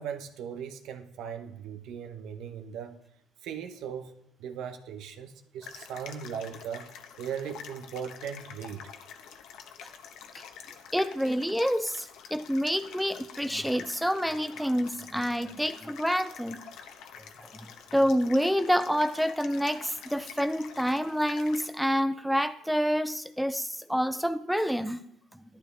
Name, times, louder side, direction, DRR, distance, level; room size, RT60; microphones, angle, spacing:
voice 1, 0.0-3.0 3.4-4.1 4.4-6.9 7.2-8.9, right 7 dB, 65° right, 1.0 m, -38 dB
sound 1, 5.6-21.7, left 7 dB, 65° left, 1.0 m, -47 dB
voice 2, 10.9-16.6 17.4-17.5 17.9-25.0 25.3-25.4, equal, ahead, 0.4 m, -28 dB
11.5 x 11.5 x 3.4 m
cardioid pair, 115°, 0 cm